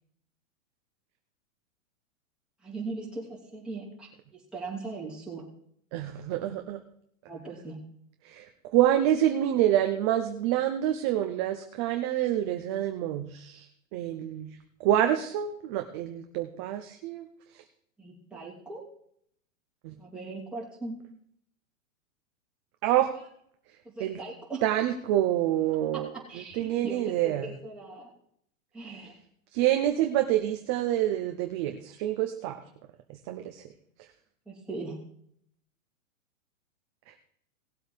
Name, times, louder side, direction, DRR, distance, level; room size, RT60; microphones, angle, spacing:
voice 1, 2.6-5.4 7.3-7.8 18.0-18.8 20.0-21.0 23.8-24.6 25.9-26.0 26.3-28.1 28.7-29.1 34.5-35.0, right 3 dB, ahead, -6 dB, 2.9 m, -39 dB
voice 2, 5.9-6.8 8.2-8.5 8.7-13.7 13.9-14.5 14.8-17.3 19.8-19.9 22.8-23.1 24.0-24.2 24.6-26.1 26.6-27.5 29.5-32.6 33.3-33.6, right 12 dB, 20° right, 5 dB, 0.4 m, -27 dB
18.5 x 7.9 x 3.3 m, 0.68 s
hypercardioid pair, 150°, 40 cm